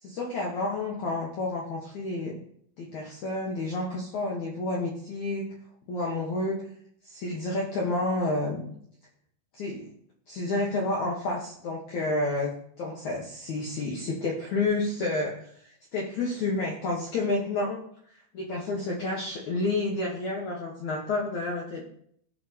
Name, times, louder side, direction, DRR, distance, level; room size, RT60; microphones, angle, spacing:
voice 1, 0.0-2.4 2.8-5.5 5.9-6.7 7.0-8.7 9.5-9.9 10.3-17.8 18.1-21.8, left 2 dB, 65° left, -2 dB, 1.9 m, -30 dB
17.0 x 6.8 x 2.9 m, 0.67 s
omnidirectional pair, 5.1 m